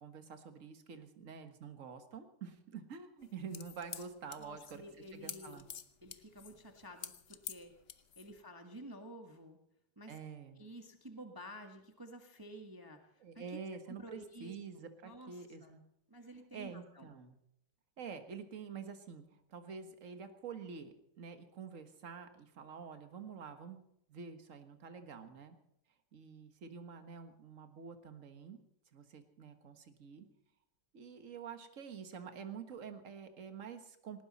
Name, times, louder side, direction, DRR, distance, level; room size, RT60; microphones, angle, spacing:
voice 1, 0.0-4.8 5.1-5.7 10.1-10.7 13.2-15.8 16.5-17.4 18.0-23.8 24.1-25.6 26.1-28.6 28.9-30.3 30.9-34.2, right 6 dB, 40° right, 7 dB, 1.7 m, -48 dB
sound 1, 3.2-8.4, left 7 dB, 55° left, 0.6 m, -48 dB
voice 2, 4.4-5.7 6.0-7.7 8.2-9.6 10.0-10.1 10.6-13.5 13.9-14.5 15.0-15.7 16.1-17.1, equal, 10° right, 4 dB, 1.3 m, -51 dB
18.5 x 18.5 x 4.2 m, 0.78 s
omnidirectional pair, 2.2 m